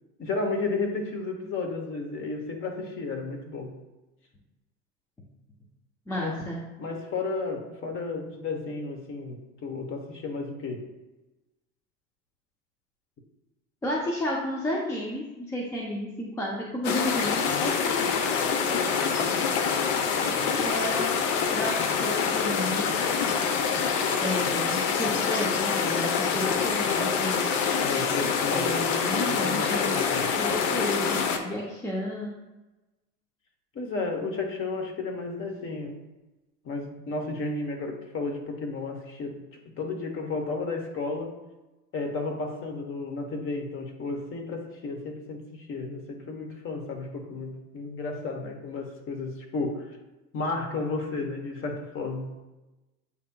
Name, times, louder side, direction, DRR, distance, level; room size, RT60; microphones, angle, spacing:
voice 1, 0.2-3.7 6.1-6.4 6.8-10.9 17.6-18.2 18.6-19.2 27.8-30.4 33.7-36.0 36.6-39.4 39.8-41.4 41.9-49.9 50.3-52.4, left 3 dB, 25° left, 3 dB, 0.9 m, -33 dB
voice 2, 6.1-6.6 13.8-17.5 20.6-21.2 21.5-23.0 24.2-27.5 28.4-29.9 30.3-32.3, left 1 dB, 5° left, -3 dB, 0.4 m, -32 dB
sound 1, 16.8-31.4, left 6 dB, 50° left, 0.7 m, -26 dB
8.2 x 2.9 x 2.2 m, 1.1 s
hypercardioid pair, 95°, 48 cm